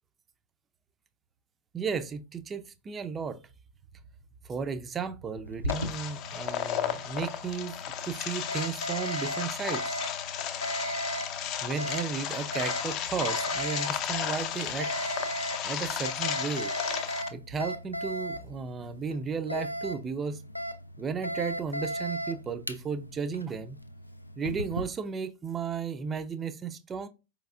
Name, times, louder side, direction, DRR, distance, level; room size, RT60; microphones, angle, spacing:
voice 1, 1.7-3.4 4.4-7.8 8.0-10.0 11.6-14.9 15.6-16.7 17.3-20.4 21.0-23.8 24.4-27.1, right 6 dB, 20° right, 0.4 m, -34 dB
Alarm, 5.5-24.8, equal, 85° left, 0.3 m, -37 dB
sound 1, 5.7-17.3, left 9 dB, 40° left, 0.5 m, -34 dB
4.7 x 3.1 x 2.4 m
figure-of-eight pair, 90°, 0 cm